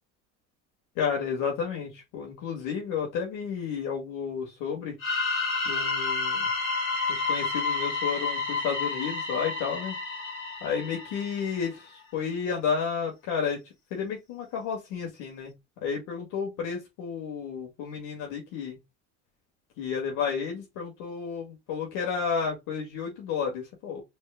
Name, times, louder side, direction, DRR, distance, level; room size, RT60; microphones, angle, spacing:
voice 1, 1.0-4.9 5.7-6.5 7.1-10.0 10.6-11.8 12.1-13.6 13.9-15.5 15.8-18.8 19.8-24.0, left 6 dB, 75° left, 2.1 m, -31 dB
sound 1, 5.0-11.7, left 3 dB, 40° left, 3.0 m, -30 dB
4.4 x 4.2 x 2.2 m
cardioid pair, 125°, 32 cm